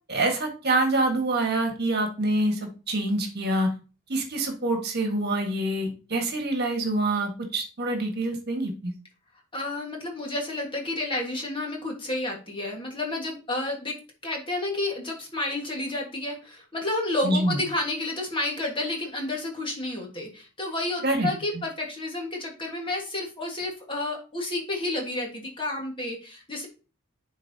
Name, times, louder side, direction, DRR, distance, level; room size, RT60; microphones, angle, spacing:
voice 1, 0.1-3.7 4.1-8.9 17.2-17.6 21.0-21.3, right 2 dB, 45° right, 3 dB, 1.5 m, -26 dB
voice 2, 9.5-13.9 14.2-26.7, left 2 dB, 25° left, 0 dB, 1.5 m, -30 dB
11.0 x 4.1 x 2.8 m, 0.34 s
head